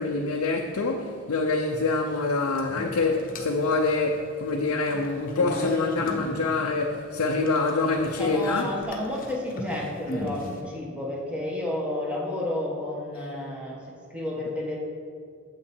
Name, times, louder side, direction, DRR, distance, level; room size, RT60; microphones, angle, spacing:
voice 1, 0.0-8.7, left 3 dB, 75° left, 1 dB, 0.6 m, -26 dB
sound 1, 2.1-2.2 2.6-4.2 4.5-7.0 7.5-10.6, left 1 dB, 40° left, 1.0 m, -35 dB
voice 2, 8.2-13.8 14.1-14.8, left 1 dB, 5° right, -3 dB, 1.4 m, -31 dB
8.9 x 7.4 x 4.4 m, 2.2 s
head